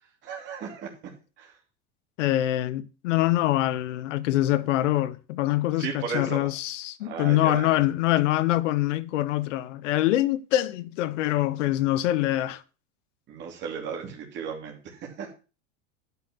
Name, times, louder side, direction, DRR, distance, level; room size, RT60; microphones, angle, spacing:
voice 1, 0.2-0.9 1.4-1.6 5.8-6.5 7.0-7.7 13.3-15.3, right 6 dB, 30° right, 2.8 m, -35 dB
voice 2, 2.2-12.6, left 15 dB, 85° left, 1.0 m, -24 dB
12.0 x 5.9 x 5.9 m
supercardioid pair, 170°, 36 cm